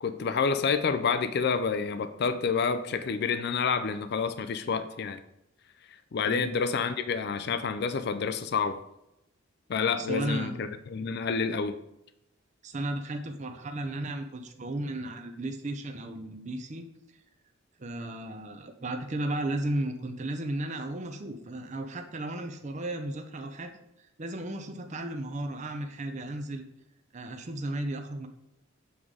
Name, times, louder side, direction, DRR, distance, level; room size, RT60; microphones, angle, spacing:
voice 1, 0.0-5.2 6.1-8.8 9.7-11.7, left 5 dB, 50° left, 11 dB, 0.4 m, -28 dB
voice 2, 10.0-10.6 12.6-16.8 17.8-23.7 24.0-26.6 27.1-28.3, right 1 dB, 35° right, 5 dB, 0.6 m, -34 dB
7.1 x 3.7 x 4.8 m, 0.83 s
head